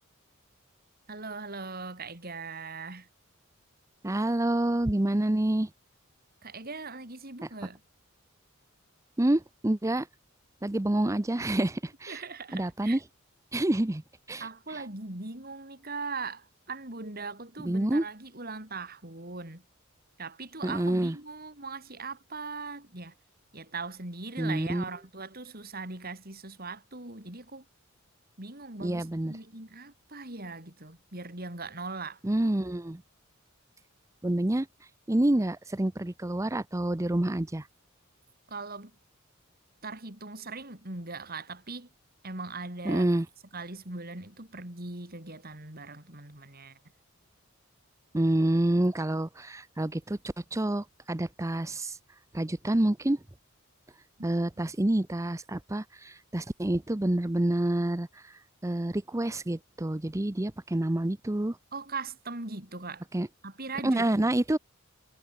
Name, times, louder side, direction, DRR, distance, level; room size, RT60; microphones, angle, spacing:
voice 1, 1.1-3.1 6.4-7.8 12.1-13.0 14.4-19.6 20.2-23.1 23.5-27.6 28.4-32.2 38.5-38.9 39.8-41.9 42.2-43.1 43.5-46.8 54.2-54.3 54.6-54.7 61.7-63.0 63.4-64.4, right 3 dB, 45° right, 4.7 m, -40 dB
voice 2, 4.0-5.7 9.2-10.1 10.6-12.2 12.5-13.0 13.5-14.0 14.3-14.5 17.6-18.0 20.6-21.1 24.4-24.8 28.8-29.3 32.2-33.0 34.2-34.7 35.1-37.6 42.9-43.3 48.1-50.2 50.5-52.0 52.3-53.2 54.2-58.1 58.6-61.6 63.1-63.3 63.8-64.6, right 1 dB, 15° right, 0.6 m, -27 dB
head